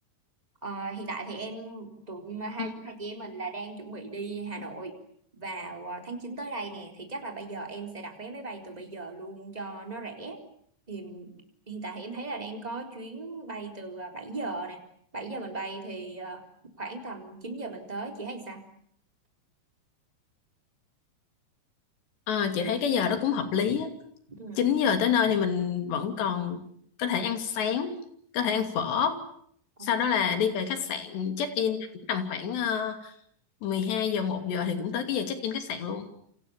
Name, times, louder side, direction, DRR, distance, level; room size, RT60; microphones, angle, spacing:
voice 1, 0.6-5.0 5.3-10.4 10.9-11.4 11.7-14.8 15.1-16.4 16.8-18.6 24.4-24.7 29.8-30.0, right 3 dB, 10° right, 4 dB, 3.7 m, -37 dB
voice 2, 22.3-23.9 24.6-26.6 27.0-28.0 28.3-29.2 29.8-33.1 33.6-36.1, left 7 dB, 90° left, 7 dB, 4.9 m, -27 dB
28.5 x 27.5 x 7.3 m, 0.67 s
omnidirectional pair, 4.8 m